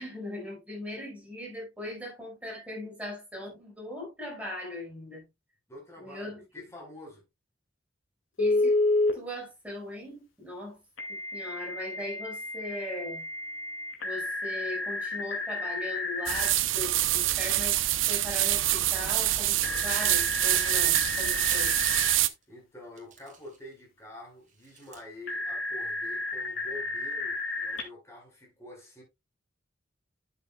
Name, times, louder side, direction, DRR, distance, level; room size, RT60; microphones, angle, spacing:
voice 1, 0.0-5.2 6.0-6.4 8.4-8.7 9.1-10.8 11.1-13.2 14.0-17.8 18.1-21.7, left 1 dB, 5° right, 4.9 m, -39 dB
voice 2, 5.7-7.2 22.5-29.0, left 1 dB, 15° left, 4.4 m, -47 dB
Telephone, 8.4-9.1 11.0-16.5 19.6-22.1 25.3-27.8, left 2 dB, 90° left, 2.2 m, -31 dB
sound 1, 16.3-22.3, right 14 dB, 80° right, 0.6 m, -26 dB
sound 2, 21.3-21.7 22.4-22.5 23.0-23.8 24.4-25.0, right 7 dB, 40° right, 2.0 m, -48 dB
11.5 x 7.0 x 2.2 m
head